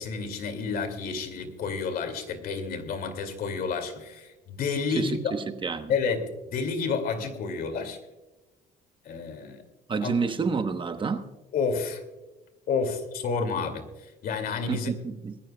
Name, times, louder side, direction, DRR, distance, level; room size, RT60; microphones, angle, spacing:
voice 1, 0.0-5.4 5.9-8.0 9.0-9.6 10.0-10.1 11.5-12.0 12.7-14.9, left 5 dB, 60° left, 2.3 m, -30 dB
voice 2, 5.0-5.9 9.9-11.3 14.7-15.4, right 5 dB, 30° right, 1.0 m, -29 dB
21.5 x 15.0 x 2.2 m
cardioid pair, 110°, 17 cm